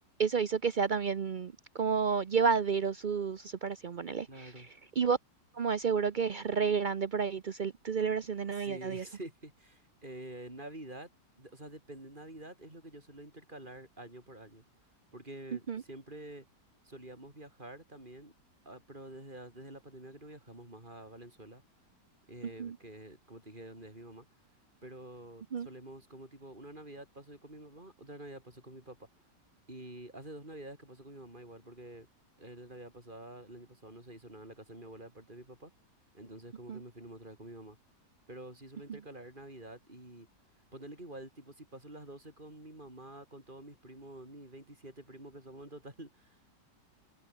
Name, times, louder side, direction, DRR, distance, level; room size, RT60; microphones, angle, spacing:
voice 1, 0.2-4.7 5.0-5.2 5.5-9.0 15.7-15.8 22.6-22.8 25.5-25.7 36.7-36.8, right 6 dB, 90° right, 0.4 m, -31 dB
voice 2, 4.3-4.7 8.5-11.1 11.4-14.6 15.1-16.4 16.8-18.3 18.6-21.6 22.3-24.2 24.8-29.1 29.7-32.1 32.4-35.7 36.1-37.8 38.3-40.3 40.7-46.4, right 1 dB, 25° right, 6.6 m, -48 dB
omnidirectional pair, 1.9 m